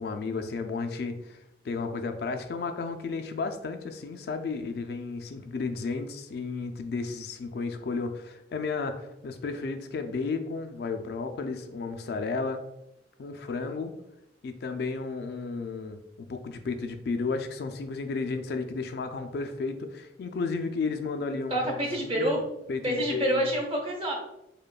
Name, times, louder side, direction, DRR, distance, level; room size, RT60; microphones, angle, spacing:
voice 1, 0.0-1.4 1.6-12.6 13.2-13.9 14.4-22.4 22.7-23.5, left 4 dB, 60° left, 7 dB, 0.3 m, -33 dB
voice 2, 21.5-22.4 22.8-24.1, right 1 dB, 35° right, -2 dB, 0.9 m, -27 dB
5.0 x 2.2 x 2.3 m, 0.86 s
head